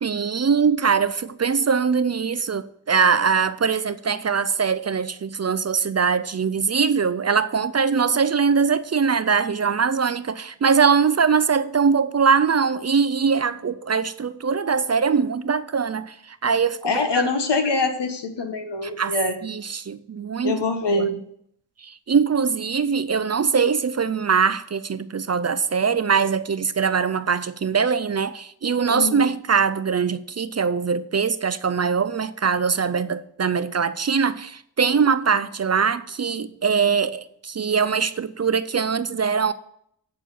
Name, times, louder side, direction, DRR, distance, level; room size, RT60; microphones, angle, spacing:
voice 1, 0.0-17.2 18.8-19.1 19.4-20.6 20.9-21.2 21.8-39.5, right 6 dB, 40° right, 0.4 m, -22 dB
voice 2, 16.8-19.4 20.4-21.2 28.9-29.3, left 3 dB, 75° left, 1.4 m, -24 dB
9.0 x 4.4 x 7.5 m
wide cardioid pair, 60°, 42 cm